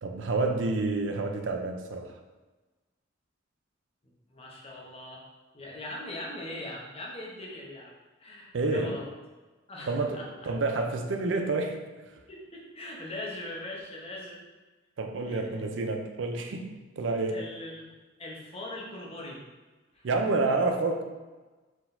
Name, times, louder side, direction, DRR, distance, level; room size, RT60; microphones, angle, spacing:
voice 1, 0.0-2.2 8.5-9.0 9.9-11.8 15.0-17.4 20.0-21.0, right 3 dB, 70° right, 4 dB, 0.5 m, -29 dB
voice 2, 4.3-5.3 5.5-7.9 8.2-9.1 9.7-10.3 12.3-14.4 15.3-15.8 17.3-17.9 18.2-19.4 19.9-20.1, left 1 dB, 30° left, -2 dB, 0.8 m, -41 dB
4.5 x 3.8 x 2.6 m, 1.2 s
head